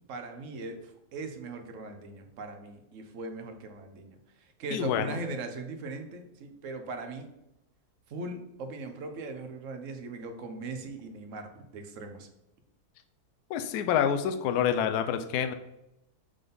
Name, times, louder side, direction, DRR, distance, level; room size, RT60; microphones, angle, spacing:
voice 1, 0.1-4.2 4.6-7.3 8.1-12.3, right 3 dB, 55° right, 6 dB, 1.2 m, -39 dB
voice 2, 4.7-5.2 13.5-15.5, left 8 dB, 80° left, 8 dB, 1.1 m, -27 dB
6.8 x 3.8 x 5.4 m, 0.88 s
omnidirectional pair, 1.7 m